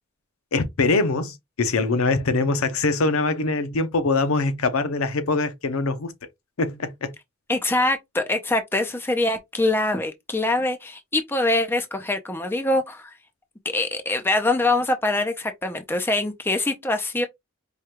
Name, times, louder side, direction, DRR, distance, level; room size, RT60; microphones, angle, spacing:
voice 1, 0.5-6.1 6.6-7.1, left 3 dB, 75° left, 0.6 m, -23 dB
voice 2, 7.5-13.1 13.7-17.3, left 2 dB, 10° left, 0.4 m, -24 dB
4.8 x 2.2 x 2.9 m
head